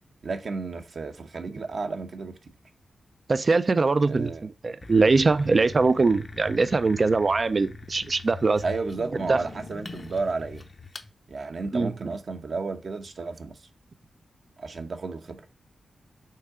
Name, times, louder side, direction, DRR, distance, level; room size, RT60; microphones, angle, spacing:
voice 1, 0.2-2.4 4.1-4.5 8.6-10.7 11.3-13.6 14.6-15.4, right 4 dB, 55° right, 0.8 m, -32 dB
voice 2, 3.3-8.6 9.3-9.4 11.7-11.9, right 3 dB, 35° right, 0.4 m, -22 dB
sound 1, 4.8-11.1, left 3 dB, 30° left, 0.6 m, -42 dB
5.7 x 3.7 x 4.8 m
wide cardioid pair, 140°, 0 cm